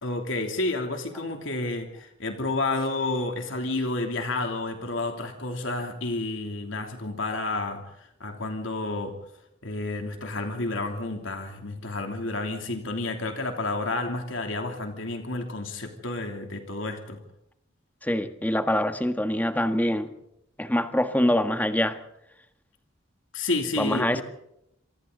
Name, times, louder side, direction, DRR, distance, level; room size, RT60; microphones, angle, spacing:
voice 1, 0.0-9.1 9.6-17.2 23.3-24.2, left 2 dB, 85° left, 4 dB, 3.0 m, -30 dB
voice 2, 18.0-20.1 20.6-22.0 23.8-24.2, left 1 dB, 10° left, 8 dB, 1.6 m, -24 dB
27.5 x 24.0 x 4.0 m, 0.80 s
head